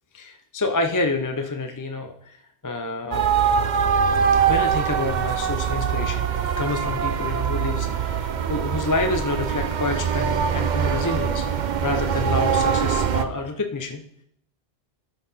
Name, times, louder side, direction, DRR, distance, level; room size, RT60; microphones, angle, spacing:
voice 1, 0.1-2.4 2.6-3.3 4.5-14.0, left 2 dB, 25° left, 6 dB, 0.5 m, -28 dB
sound 1, 3.1-13.2, right 7 dB, 50° right, 0.7 m, -23 dB
13.0 x 5.7 x 4.1 m, 0.70 s
omnidirectional pair, 1.1 m